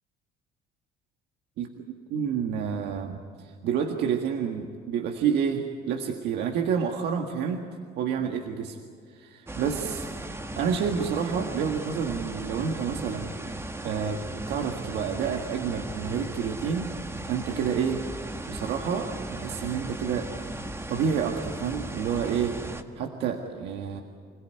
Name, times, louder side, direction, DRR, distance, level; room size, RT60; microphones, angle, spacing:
voice 1, 2.1-7.7 8.0-8.8 9.1-10.1 10.6-13.3 13.8-16.9 17.3-18.0 18.5-20.3 20.9-22.6 23.0-24.0, right 7 dB, 80° right, 3 dB, 1.8 m, -29 dB
sound 1, 9.5-22.8, right 2 dB, 15° right, 1.7 m, -37 dB
26.5 x 17.0 x 9.4 m, 2.3 s
cardioid pair, 110°, 17 cm